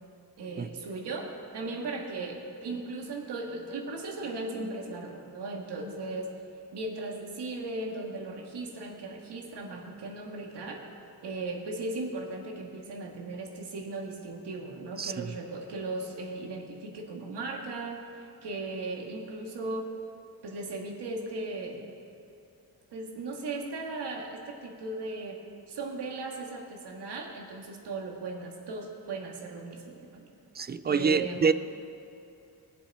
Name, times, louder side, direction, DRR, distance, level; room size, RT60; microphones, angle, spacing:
voice 1, 0.4-6.3 6.7-10.8 11.2-19.9 20.4-21.8 22.9-25.4 25.7-30.3 30.9-31.5, right 2 dB, 80° right, 0 dB, 1.9 m, -37 dB
voice 2, 30.6-31.5, right 5 dB, 25° right, 12 dB, 0.3 m, -26 dB
21.0 x 7.3 x 4.3 m, 2.7 s
cardioid pair, 110°, 40 cm